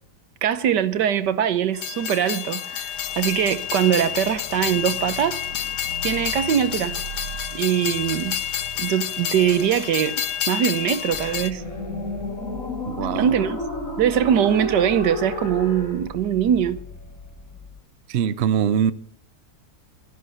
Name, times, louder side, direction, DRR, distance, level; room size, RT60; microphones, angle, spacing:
voice 1, 0.4-5.4 6.0-7.0 7.5-8.4 8.8-11.6 13.2-13.6 14.0-16.8, right 9 dB, 90° right, 1.6 m, -22 dB
Train, 1.7-11.5, left 10 dB, 80° left, 1.4 m, -29 dB
sound 1, 2.8-16.0, equal, 50° left, 3.8 m, -35 dB
sound 2, 11.1-17.8, left 3 dB, 10° left, 1.1 m, -41 dB
voice 2, 12.9-13.4 18.1-18.9, right 8 dB, 55° right, 0.7 m, -22 dB
13.0 x 11.5 x 7.8 m
omnidirectional pair, 1.8 m